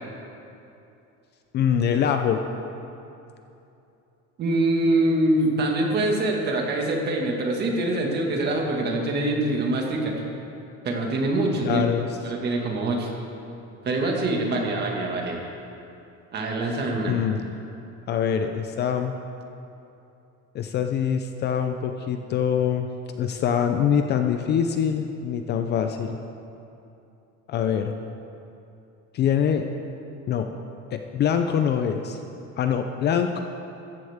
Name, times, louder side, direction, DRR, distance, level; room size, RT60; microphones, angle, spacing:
voice 1, 1.5-2.4 11.7-12.2 17.1-17.4 18.1-19.2 20.5-22.9 23.2-26.2 27.5-27.9 29.1-29.6 30.3-30.5 30.9-32.2 32.6-33.4, left 8 dB, 35° left, 6 dB, 0.5 m, -24 dB
voice 2, 4.4-10.1 10.8-11.8 12.2-13.1 13.8-15.4 16.3-17.2, right 2 dB, 35° right, 0 dB, 1.8 m, -24 dB
14.5 x 14.5 x 3.6 m, 2.8 s
cardioid pair, 165°, 30 cm